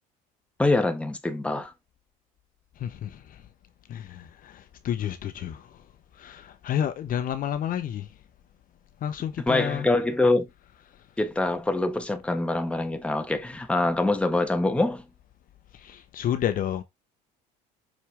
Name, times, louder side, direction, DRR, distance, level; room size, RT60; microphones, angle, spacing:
voice 1, 0.6-1.7 9.4-10.5 11.2-15.0, left 2 dB, 5° left, 1.4 m, -24 dB
voice 2, 2.8-3.5 3.9-5.9 6.1-8.1 9.0-9.9 10.9-11.0 15.7-16.8, left 10 dB, 50° left, 0.8 m, -31 dB
6.2 x 4.4 x 3.4 m
supercardioid pair, 100°, 18 cm